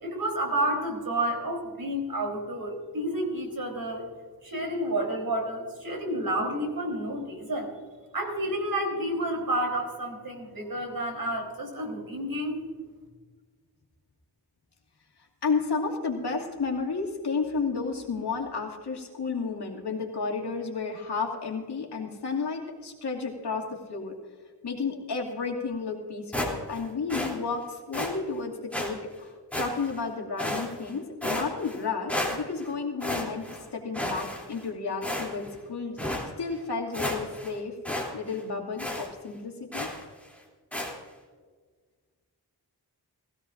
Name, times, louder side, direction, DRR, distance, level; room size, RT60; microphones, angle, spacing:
voice 1, 0.0-4.1 4.4-7.8 8.1-12.6, right 1 dB, 60° right, 1 dB, 3.8 m, -30 dB
voice 2, 15.4-24.1 24.6-33.5 33.7-36.0 36.4-37.8 38.1-39.9, left 4 dB, 80° left, -1 dB, 2.5 m, -32 dB
sound 1, 26.3-26.8 27.1-27.3 27.9-28.1 28.7-28.9 29.5-30.0 30.4-30.9 31.2-31.8 32.1-32.7 33.0-33.6 33.9-34.6 35.0-35.5 36.0-36.2 36.6-36.7 36.9-37.5 37.9-38.1 38.3-38.4 38.8-39.1 39.7-40.0 40.7-40.9, left 1 dB, 5° left, 3.0 m, -32 dB
20.0 x 16.0 x 2.6 m, 1.5 s
wide cardioid pair, 85°, 40 cm